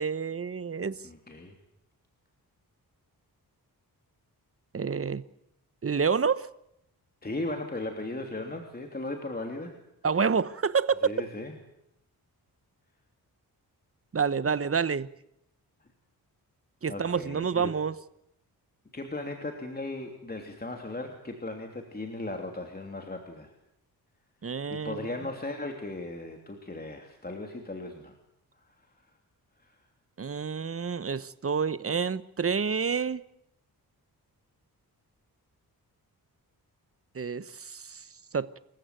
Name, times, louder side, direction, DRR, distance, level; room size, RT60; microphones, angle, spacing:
voice 1, 0.0-1.0 4.7-5.2 5.8-6.5 10.0-11.1 14.1-15.1 16.8-17.9 24.4-25.1 30.2-33.2 37.1-38.1 38.3-38.5, right 6 dB, 35° right, 1.1 m, -28 dB
voice 2, 1.0-1.6 7.2-9.7 11.0-11.5 16.9-17.7 18.9-23.5 24.7-28.1 28.6-29.1 29.6-29.8, left 2 dB, 25° left, 3.1 m, -37 dB
28.0 x 15.0 x 9.1 m
cardioid pair, 85°, 38 cm